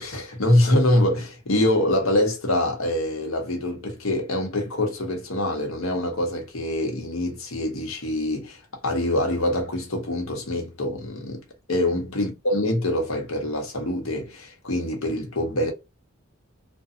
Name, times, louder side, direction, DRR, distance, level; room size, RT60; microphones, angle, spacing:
voice 1, 0.0-11.4 11.7-15.7, left 1 dB, 85° left, 1.0 m, -24 dB
2.6 x 2.2 x 2.5 m
head